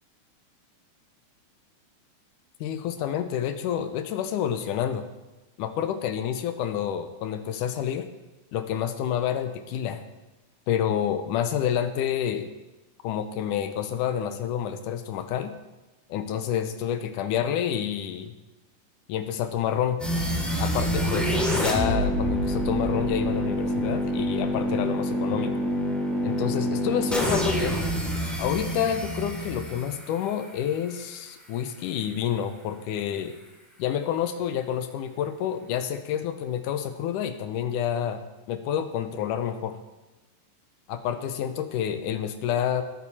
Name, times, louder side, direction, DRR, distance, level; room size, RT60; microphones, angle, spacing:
voice 1, 2.6-5.1 5.6-8.1 8.5-10.0 10.7-12.5 13.0-15.5 16.1-18.3 19.1-20.0 20.6-25.5 26.2-27.8 28.4-33.4 33.8-38.2 38.5-39.7 40.9-42.8, left 9 dB, 75° left, 9 dB, 2.2 m, -28 dB
sound 1, 20.0-31.0, equal, ahead, 1.8 m, -27 dB
20.0 x 9.1 x 4.3 m, 1.1 s
omnidirectional pair, 3.9 m